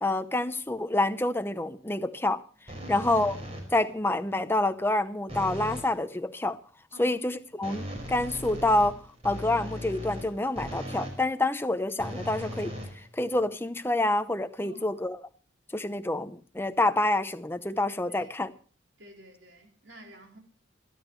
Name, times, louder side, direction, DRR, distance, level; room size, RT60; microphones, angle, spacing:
voice 1, 0.0-2.4 2.9-3.4 3.7-6.6 7.0-9.0 9.2-12.7 13.1-15.2 15.7-18.5, left 2 dB, 10° left, 0.7 m, -27 dB
sound 1, 2.7-3.9 5.3-6.0 7.6-11.2 12.0-13.5, equal, 35° right, 5.2 m, -38 dB
voice 2, 14.6-15.0 18.1-18.3 19.0-20.4, right 1 dB, 75° right, 4.6 m, -50 dB
26.5 x 11.0 x 3.2 m
head